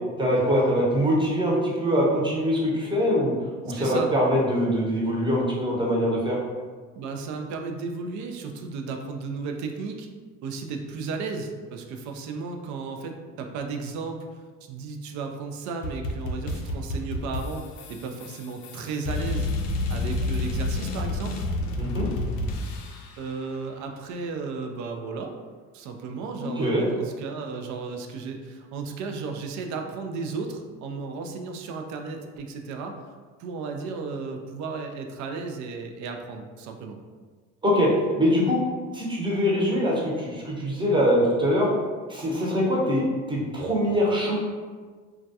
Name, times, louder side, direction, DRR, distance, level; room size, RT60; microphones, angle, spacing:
voice 1, 0.2-3.3 3.6-6.4 21.8-22.1 26.4-26.8 37.6-37.9 38.2-38.6 38.9-41.7 42.1-44.4, equal, 15° right, -4 dB, 0.8 m, -23 dB
voice 2, 3.7-4.1 7.0-10.1 10.4-21.4 23.2-25.3 25.7-33.0 33.4-37.0, right 4 dB, 55° right, 4 dB, 0.4 m, -34 dB
sound 1, 15.8-23.2, left 2 dB, 70° left, 0.5 m, -29 dB
2.3 x 2.2 x 2.7 m, 1.5 s
supercardioid pair, 75°, 36 cm